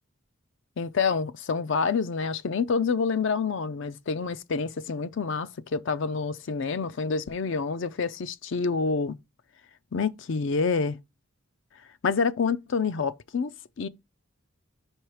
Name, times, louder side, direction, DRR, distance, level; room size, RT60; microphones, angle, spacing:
voice 1, 0.8-9.2 9.9-11.0 12.0-13.9, left 5 dB, 60° left, 0.5 m, -27 dB
5.4 x 4.5 x 4.9 m
head